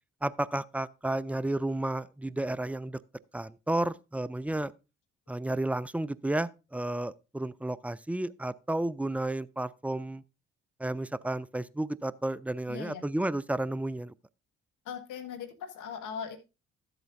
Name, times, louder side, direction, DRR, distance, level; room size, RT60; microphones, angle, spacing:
voice 1, 0.2-3.0 3.3-4.7 5.3-10.2 10.8-14.1, right 1 dB, 5° right, 0.4 m, -32 dB
voice 2, 12.7-13.0 14.8-16.4, left 7 dB, 65° left, 1.6 m, -39 dB
12.5 x 7.9 x 2.6 m
hypercardioid pair, 50°, 33 cm